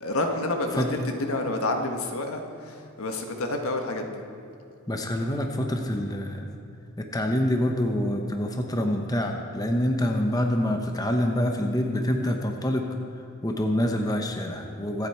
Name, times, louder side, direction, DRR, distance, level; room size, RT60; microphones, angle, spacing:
voice 1, 0.0-4.2, left 2 dB, 80° left, 4 dB, 1.5 m, -29 dB
voice 2, 4.9-6.5 7.0-12.9 13.4-15.1, left 1 dB, 15° left, 3 dB, 0.9 m, -26 dB
24.5 x 8.7 x 4.4 m, 2.5 s
head